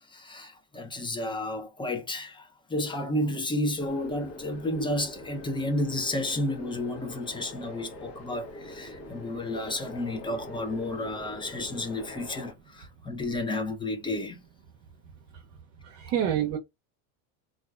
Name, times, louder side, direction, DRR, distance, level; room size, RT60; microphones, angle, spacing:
voice 1, 0.0-14.4, left 1 dB, 15° left, 0.6 m, -32 dB
sound 1, 3.8-12.5, left 1 dB, 40° left, 1.0 m, -43 dB
voice 2, 15.8-16.6, right 10 dB, 50° right, 0.7 m, -28 dB
3.3 x 2.4 x 2.3 m
supercardioid pair, 125°, 38 cm